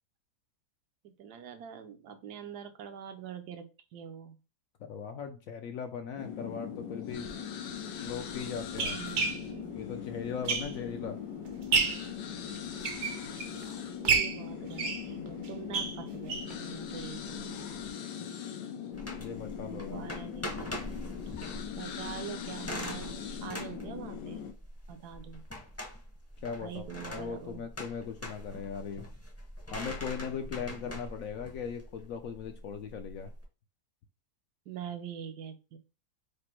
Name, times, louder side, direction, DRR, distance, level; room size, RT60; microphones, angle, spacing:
voice 1, 1.0-4.4 8.9-9.7 13.5-17.7 19.7-20.8 21.8-24.4 24.9-25.4 26.6-27.6 34.7-35.8, right 8 dB, 75° right, 7 dB, 1.1 m, -44 dB
voice 2, 4.8-7.3 8.0-9.0 9.7-11.2 19.2-20.1 26.4-29.1 29.7-33.3, left 6 dB, 70° left, 6 dB, 0.8 m, -39 dB
sound 1, 6.2-24.5, left 8 dB, 90° left, 1.3 m, -40 dB
sound 2, 7.2-7.3 8.1-11.0 11.4-12.1 12.6-13.6 14.0-16.6 16.9-17.0 17.3-17.4 17.8-17.9, right 5 dB, 60° right, 0.8 m, -31 dB
sound 3, 18.9-33.4, left 1 dB, 15° left, 0.6 m, -43 dB
5.1 x 2.1 x 4.3 m, 0.32 s
omnidirectional pair, 1.8 m